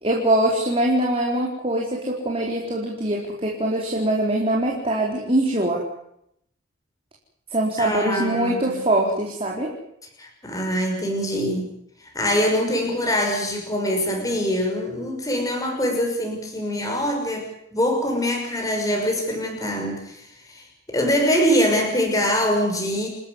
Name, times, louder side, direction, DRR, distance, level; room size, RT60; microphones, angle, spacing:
voice 1, 0.0-5.8 7.5-9.7, right 1 dB, 30° right, -2 dB, 4.5 m, -23 dB
voice 2, 7.8-8.8 10.2-11.7 12.1-17.4 17.7-23.1, equal, 15° left, 2 dB, 6.0 m, -23 dB
30.0 x 13.5 x 9.7 m, 0.74 s
head